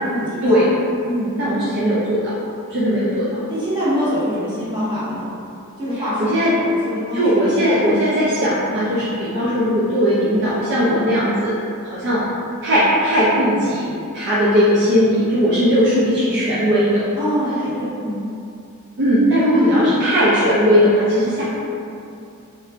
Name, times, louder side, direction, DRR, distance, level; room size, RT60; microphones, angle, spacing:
voice 1, 0.1-0.6 1.0-1.4 3.5-5.2 5.8-6.3 6.6-7.9 17.2-18.2, equal, 20° right, -12 dB, 1.1 m, -24 dB
voice 2, 1.4-2.3 2.7-3.4 6.2-6.5 7.1-11.6 11.8-12.2 12.6-13.9 14.1-17.1 19.0-21.4, equal, 50° right, -8 dB, 0.4 m, -18 dB
3.3 x 3.1 x 2.4 m, 2.6 s
head